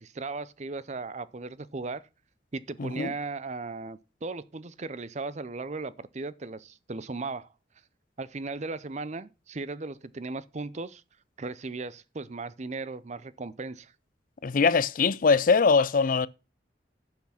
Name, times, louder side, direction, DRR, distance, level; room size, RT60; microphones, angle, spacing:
voice 1, 0.0-2.0 2.5-7.5 8.2-11.0 11.4-13.9, right 3 dB, 40° right, 0.6 m, -37 dB
voice 2, 2.8-3.1 14.4-16.3, left 5 dB, 45° left, 0.4 m, -22 dB
10.5 x 6.0 x 5.7 m
head